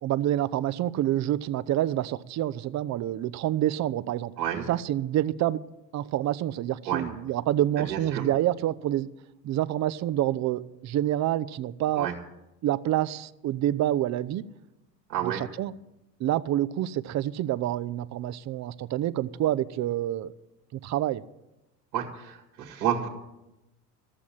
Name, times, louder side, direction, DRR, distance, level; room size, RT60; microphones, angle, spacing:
voice 1, 0.0-4.3 4.7-5.6 5.9-9.1 9.4-12.1 12.6-14.4 15.2-15.7 16.2-20.3 20.7-21.2, right 13 dB, 35° right, 15 dB, 0.7 m, -27 dB
voice 2, 7.9-8.3 12.0-12.1 15.1-15.4 21.9-23.1, right 9 dB, 80° right, 1 dB, 2.0 m, -30 dB
14.5 x 7.1 x 10.0 m, 0.94 s
hypercardioid pair, 80°, 50 cm